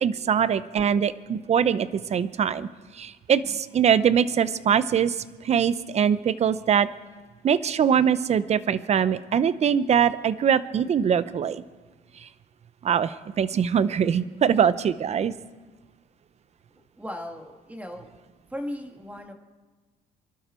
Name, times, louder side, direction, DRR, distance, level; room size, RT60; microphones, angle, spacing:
voice 1, 0.0-2.7 2.9-5.2 5.4-6.9 7.4-11.6 12.2-12.3 12.8-15.3, right 8 dB, 40° right, 15 dB, 0.7 m, -22 dB
voice 2, 17.0-18.1 18.5-19.3, left 1 dB, 10° right, 4 dB, 1.9 m, -36 dB
26.5 x 12.0 x 4.4 m, 1.3 s
cardioid pair, 110°, 17 cm